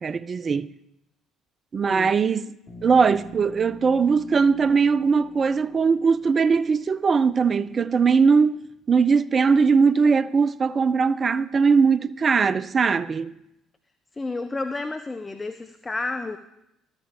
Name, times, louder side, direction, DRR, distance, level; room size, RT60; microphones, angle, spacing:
voice 1, 0.0-0.7 1.7-2.6 2.8-13.3, right 5 dB, 35° right, 0.4 m, -20 dB
voice 2, 1.8-2.1 14.1-16.4, left 3 dB, 20° left, 0.5 m, -31 dB
Bass guitar, 2.7-6.7, equal, 35° left, 4.3 m, -46 dB
12.5 x 8.9 x 3.6 m
figure-of-eight pair, 50°, 0 cm